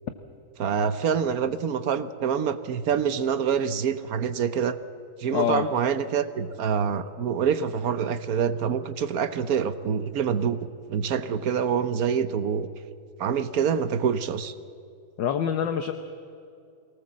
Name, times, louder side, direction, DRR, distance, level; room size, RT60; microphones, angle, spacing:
voice 1, 0.6-4.8 5.2-12.7 13.2-14.5, right 7 dB, 60° right, 12 dB, 0.9 m, -26 dB
voice 2, 5.3-5.7 15.2-15.9, left 9 dB, 65° left, 8 dB, 1.5 m, -25 dB
23.0 x 18.5 x 7.5 m, 2.5 s
omnidirectional pair, 2.4 m